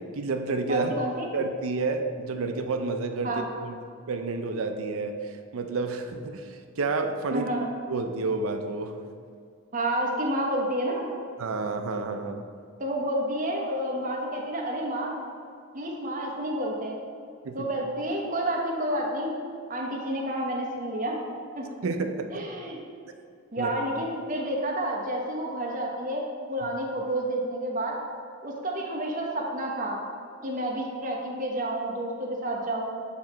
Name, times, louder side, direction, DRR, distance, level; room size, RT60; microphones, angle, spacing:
voice 1, 0.0-0.9 1.3-3.7 4.1-7.5 7.9-8.9 11.4-12.4 17.4-17.7 21.8-22.4 23.6-23.7, right 3 dB, 75° right, 6 dB, 0.5 m, -30 dB
voice 2, 0.7-1.3 3.2-3.4 7.3-7.7 9.7-11.1 12.8-15.1 15.7-16.9 17.5-19.4 19.7-21.2 21.5-21.7 22.3-22.8 23.5-26.2 26.5-28.0 28.4-30.0 30.4-32.9, right 1 dB, 40° right, -1 dB, 0.9 m, -30 dB
8.5 x 2.9 x 4.4 m, 2.4 s
head